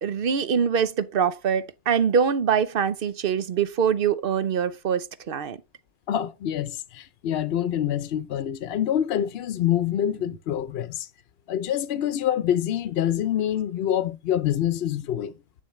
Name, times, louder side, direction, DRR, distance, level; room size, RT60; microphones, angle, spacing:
voice 1, 0.0-5.6, right 7 dB, 60° right, 0.9 m, -24 dB
voice 2, 6.1-11.1 11.5-15.3, left 10 dB, 70° left, 0.8 m, -26 dB
8.5 x 7.0 x 3.1 m
omnidirectional pair, 1.1 m